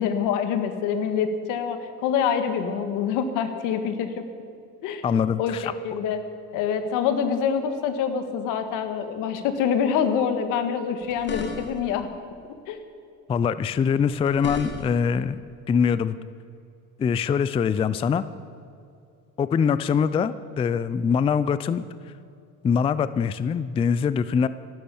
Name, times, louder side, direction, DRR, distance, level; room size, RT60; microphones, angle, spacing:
voice 1, 0.0-4.2 4.8-5.0 5.4-6.2 6.5-12.1 12.7-12.8, left 7 dB, 75° left, 9 dB, 1.6 m, -26 dB
voice 2, 5.0-5.7 13.3-15.4 15.7-16.2 17.0-18.2 19.4-21.8 22.6-24.5, left 6 dB, 20° left, 15 dB, 0.3 m, -23 dB
sound 1, 11.0-12.0 14.0-15.1, left 4 dB, 35° left, 1.9 m, -35 dB
14.5 x 12.0 x 7.0 m, 2.5 s
cardioid pair, 135°, 32 cm